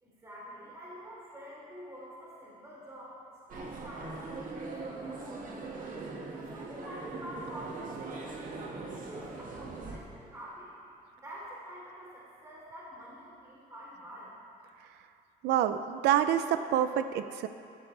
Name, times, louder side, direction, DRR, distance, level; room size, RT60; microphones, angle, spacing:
voice 1, 0.0-10.8 11.2-14.3, equal, 20° right, -7 dB, 3.6 m, -47 dB
sound 1, 3.5-10.0, right 3 dB, 50° right, 1.8 m, -41 dB
voice 2, 15.4-17.5, right 10 dB, 80° right, 10 dB, 0.6 m, -27 dB
16.0 x 13.5 x 3.4 m, 2.5 s
cardioid pair, 110°, 17 cm